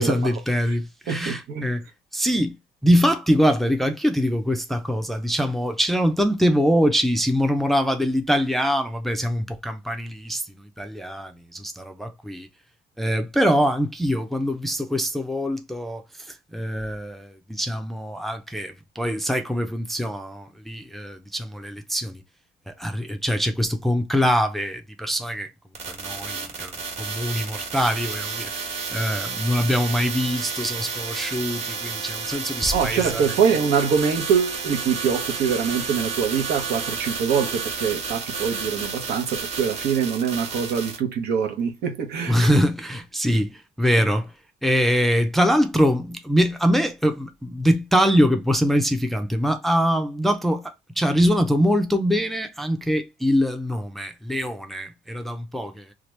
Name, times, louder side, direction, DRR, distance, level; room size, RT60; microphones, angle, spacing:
voice 1, 0.0-1.8 2.1-2.6 2.8-12.5 13.0-16.0 16.3-22.2 22.7-25.5 25.9-33.4 42.3-44.3 44.6-55.9, equal, ahead, 0.4 m, -23 dB
voice 2, 1.1-1.7 32.7-42.6, right 7 dB, 75° right, 0.9 m, -24 dB
sound 1, 25.7-41.0, right 5 dB, 40° right, 1.2 m, -31 dB
2.9 x 2.4 x 3.2 m
cardioid pair, 110°, 17 cm